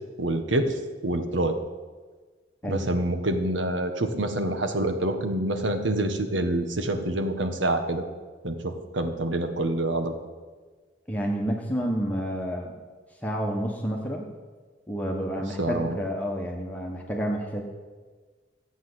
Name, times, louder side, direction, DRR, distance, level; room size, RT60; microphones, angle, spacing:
voice 1, 0.2-1.6 2.7-8.0 8.4-10.1 15.6-16.0, right 1 dB, 90° right, 7 dB, 1.5 m, -26 dB
voice 2, 11.1-12.8 13.2-14.3 14.9-17.6, equal, 10° left, -1 dB, 1.3 m, -29 dB
14.5 x 8.3 x 8.0 m, 1.4 s
head